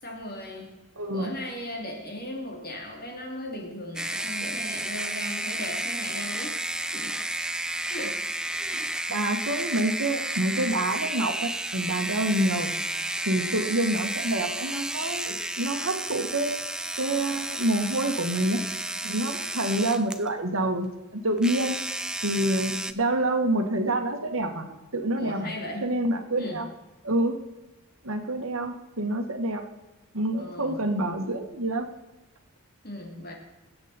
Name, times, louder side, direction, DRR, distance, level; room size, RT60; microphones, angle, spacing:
voice 1, 0.0-0.8 1.1-6.5 6.9-7.2 7.9-8.2 8.5-8.9 25.2-25.9 26.4-26.6 30.4-30.8 32.8-33.3, left 1 dB, 40° left, 0 dB, 3.2 m, -37 dB
voice 2, 1.0-1.3 8.7-8.8 9.1-12.8 13.2-16.5 17.0-18.6 19.0-21.8 22.2-24.7 24.9-25.5 25.8-26.7 27.0-27.3 28.0-29.6 30.1-31.9, right 1 dB, 65° right, 5 dB, 1.7 m, -27 dB
sound 1, 3.9-20.3 21.4-22.9, right 1 dB, 5° right, 0.4 m, -32 dB
21.5 x 8.3 x 4.4 m, 1.1 s
head